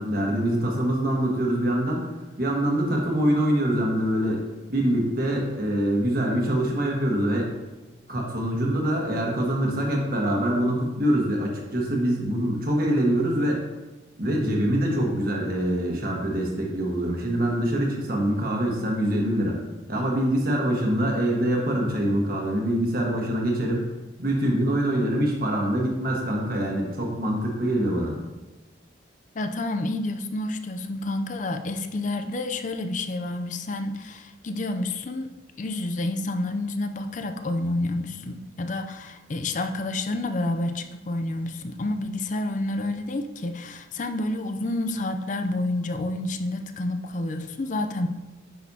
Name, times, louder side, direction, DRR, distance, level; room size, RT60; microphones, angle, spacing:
voice 1, 0.0-2.0 2.4-4.4 4.7-7.5 8.1-13.6 14.2-19.6 19.9-23.9 24.2-28.1, right 1 dB, 50° right, -1 dB, 1.5 m, -24 dB
voice 2, 29.3-35.3 35.6-48.1, left 2 dB, 40° left, 7 dB, 0.5 m, -29 dB
9.4 x 6.2 x 2.8 m, 1.1 s
head